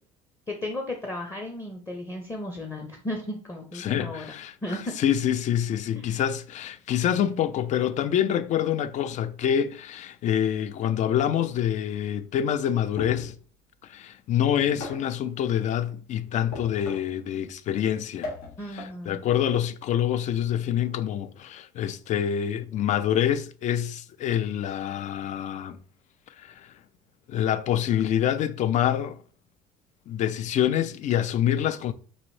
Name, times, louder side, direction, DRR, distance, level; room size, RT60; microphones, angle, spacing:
voice 1, 0.5-4.2 4.6-4.9 6.0-6.2 18.6-19.2, left 1 dB, 20° left, 0.7 m, -34 dB
voice 2, 3.8-13.3 13.8-18.3 18.7-25.8 26.4-26.7 27.3-29.2 30.1-31.9, left 10 dB, 45° left, 0.4 m, -26 dB
sound 1, 13.0-13.4 14.6-15.1 16.5-17.2 18.2-19.0, left 3 dB, 75° left, 1.0 m, -38 dB
3.9 x 2.6 x 3.1 m
supercardioid pair, 90°, 17 cm